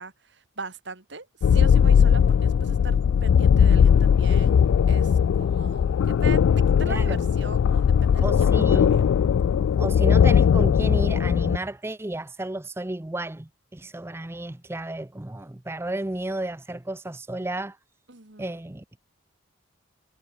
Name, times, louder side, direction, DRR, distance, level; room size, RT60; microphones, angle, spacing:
voice 1, 0.0-5.1 5.4-8.6 8.9-9.0 18.1-18.6, right 3 dB, 60° right, 2.3 m, -40 dB
sound 1, 1.4-11.6, left 7 dB, 90° left, 0.3 m, -19 dB
voice 2, 6.8-7.2 8.2-9.0 9.7-17.8 18.4-19.0, right 1 dB, 10° right, 0.5 m, -32 dB
head